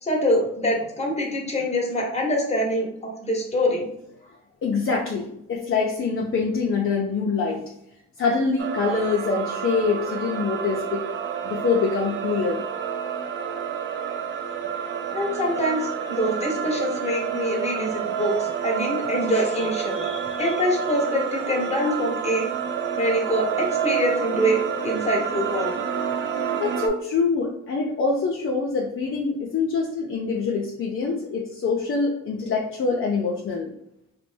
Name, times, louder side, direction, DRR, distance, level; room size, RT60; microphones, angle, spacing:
voice 1, 0.0-3.9 15.1-22.5 23.0-25.8, equal, 20° left, -1 dB, 0.9 m, -25 dB
voice 2, 4.6-7.6 8.2-11.0 11.4-12.6 26.6-33.7, left 4 dB, 45° left, -1 dB, 0.5 m, -25 dB
sound 1, 8.6-26.9, right 8 dB, 40° right, 0.4 m, -29 dB
2.5 x 2.2 x 3.2 m, 0.77 s
cardioid pair, 90°, 30 cm